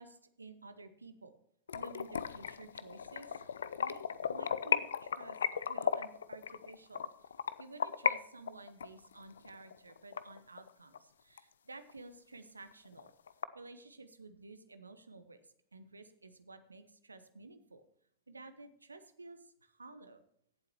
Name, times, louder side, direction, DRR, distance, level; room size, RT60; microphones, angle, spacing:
voice 1, 0.0-1.4 1.7-3.3 3.8-4.0 4.3-5.4 5.7-7.1 7.6-13.1 13.5-15.4 15.7-17.9 18.3-20.2, right 3 dB, 80° right, 11 dB, 0.9 m, -53 dB
sound 1, 1.7-8.1 8.5-11.0 11.4-11.5 11.9-12.0 12.3-12.4 12.7-13.5, left 7 dB, 65° left, 0.5 m, -35 dB
17.0 x 7.7 x 3.0 m, 0.68 s
figure-of-eight pair, 90°, 0 cm